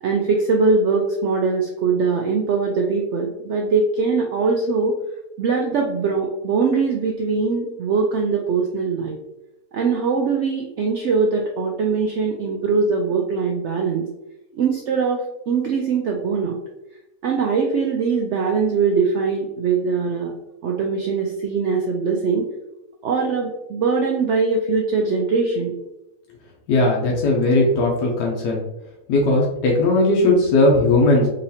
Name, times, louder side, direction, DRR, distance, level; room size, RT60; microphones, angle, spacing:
voice 1, 0.0-5.0 5.4-9.2 9.7-14.0 14.5-16.6 17.2-20.3 20.6-22.5 23.0-25.8, right 4 dB, 80° right, 1 dB, 0.6 m, -21 dB
voice 2, 26.7-28.6 29.1-31.3, left 2 dB, 80° left, -2 dB, 1.2 m, -17 dB
3.8 x 3.1 x 2.7 m, 0.92 s
omnidirectional pair, 1.7 m